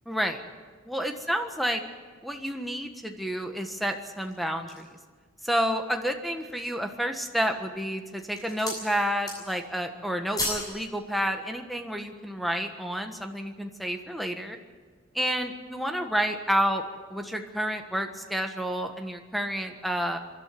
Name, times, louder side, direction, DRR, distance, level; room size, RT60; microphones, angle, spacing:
voice 1, 0.0-0.4 0.9-1.8 2.2-4.8 5.4-14.6 15.1-16.8 17.1-20.2, equal, ahead, 5 dB, 1.4 m, -30 dB
sound 1, 4.0-5.0 5.6-5.7 6.1-6.7 7.4-7.8 8.1-8.9 9.1-9.7 10.0-10.7 11.0-11.2, left 2 dB, 20° left, 7.5 m, -35 dB
25.0 x 12.0 x 9.3 m, 1.5 s
head